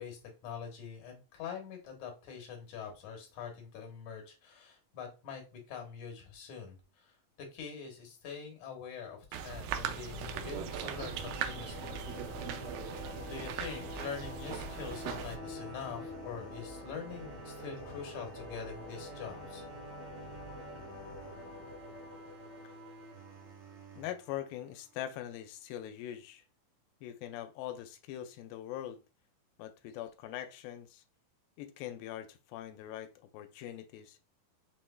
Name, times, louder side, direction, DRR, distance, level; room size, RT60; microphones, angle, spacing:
voice 1, 0.0-7.1 7.5-12.0 12.4-12.5 13.2-19.6, left 6 dB, 65° left, 2.2 m, -44 dB
sound 1, 9.3-15.4, right 8 dB, 85° right, 2.3 m, -39 dB
sound 2, 10.1-23.7, left 2 dB, 45° left, 1.2 m, -47 dB
sound 3, 14.5-25.4, right 5 dB, 65° right, 2.0 m, -53 dB
voice 2, 24.0-26.4 27.0-29.0 29.6-31.0 31.6-34.2, left 12 dB, 90° left, 2.3 m, -42 dB
5.9 x 3.2 x 2.2 m
omnidirectional pair, 4.0 m